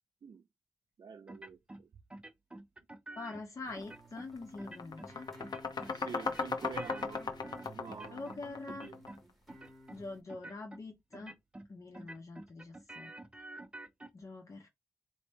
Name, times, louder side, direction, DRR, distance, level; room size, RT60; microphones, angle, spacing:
voice 1, 1.0-1.9 5.9-7.3 7.7-8.3 8.7-9.0, right 6 dB, 80° right, 0.5 m, -47 dB
sound 1, 1.3-1.8 2.1-3.4 3.8-4.3 4.6-5.1 5.4-5.9 6.2-8.4 8.7-9.2 9.5-10.0 10.3-10.8 11.1-11.7 11.9-14.1, right 2 dB, 15° right, 0.6 m, -49 dB
voice 2, 3.2-5.3 8.1-8.9 9.9-11.4 11.7-13.1 14.1-14.7, left 3 dB, 50° left, 0.7 m, -45 dB
sound 2, 3.6-10.2, equal, 5° left, 1.3 m, -54 dB
sound 3, 3.7-3.9 4.2-9.2, left 4 dB, 80° left, 0.8 m, -37 dB
3.2 x 2.8 x 4.3 m
wide cardioid pair, 145°, 7 cm